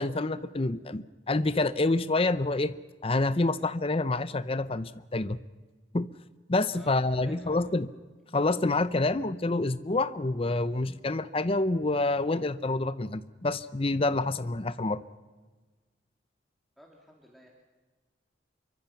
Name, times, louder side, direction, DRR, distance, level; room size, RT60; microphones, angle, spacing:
voice 1, 0.0-2.7 3.0-5.4 5.9-6.1 6.5-7.9 8.3-15.0, left 2 dB, 30° left, 14 dB, 0.6 m, -27 dB
voice 2, 7.2-7.9 16.8-17.5, equal, ahead, -1 dB, 2.8 m, -54 dB
28.0 x 24.0 x 5.8 m, 1.3 s
head